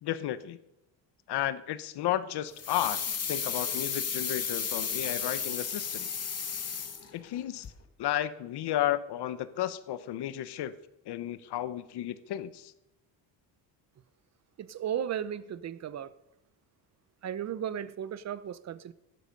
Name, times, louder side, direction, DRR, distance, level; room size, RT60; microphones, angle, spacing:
voice 1, 0.0-0.6 1.3-3.0 3.3-6.1 7.1-7.7 8.0-10.7 11.1-12.7, left 12 dB, 65° left, 1.1 m, -33 dB
sound 1, 2.6-7.4 7.6-7.7, left 7 dB, 35° left, 1.8 m, -33 dB
voice 2, 14.6-16.1 17.2-18.9, right 9 dB, 40° right, 0.8 m, -35 dB
16.5 x 12.5 x 5.4 m
cardioid pair, 125°, 42 cm